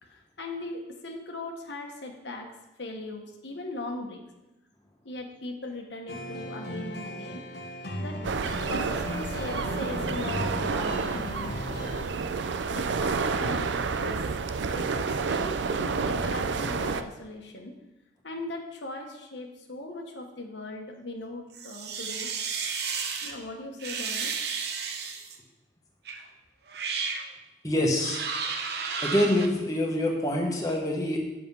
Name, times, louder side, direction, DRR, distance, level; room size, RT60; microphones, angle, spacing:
voice 1, 0.0-2.5 2.8-4.2 5.0-7.4 8.0-8.2 8.7-12.1 12.7-14.3 14.7-17.7 18.2-22.3 23.2-24.3, left 2 dB, 85° left, 2 dB, 1.3 m, -39 dB
sound 1, 6.1-12.0, left 1 dB, 65° left, 1.1 m, -37 dB
sound 2, 8.2-17.0, right 4 dB, 90° right, 0.5 m, -29 dB
sound 3, 21.5-23.3 23.8-25.4 26.1-26.2 26.7-27.3 28.0-29.5, right 5 dB, 65° right, 0.9 m, -32 dB
voice 2, 27.6-28.2 29.0-31.2, left 1 dB, 20° left, -1 dB, 1.2 m, -25 dB
7.7 x 6.1 x 5.5 m, 1.0 s
head